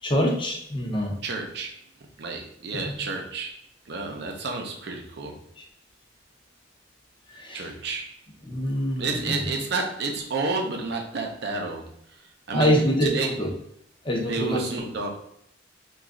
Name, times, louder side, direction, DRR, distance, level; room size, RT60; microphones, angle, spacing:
voice 1, 0.0-1.1 2.7-3.0 7.3-7.7 8.4-9.5 12.5-13.5 14.0-14.6, equal, 25° left, 0 dB, 0.6 m, -25 dB
voice 2, 1.2-1.7 2.2-3.5 3.9-5.4 7.5-8.1 9.0-11.9 12.5-13.3 14.3-15.1, right 3 dB, 60° right, 1 dB, 0.6 m, -30 dB
3.0 x 2.3 x 3.6 m, 0.74 s
head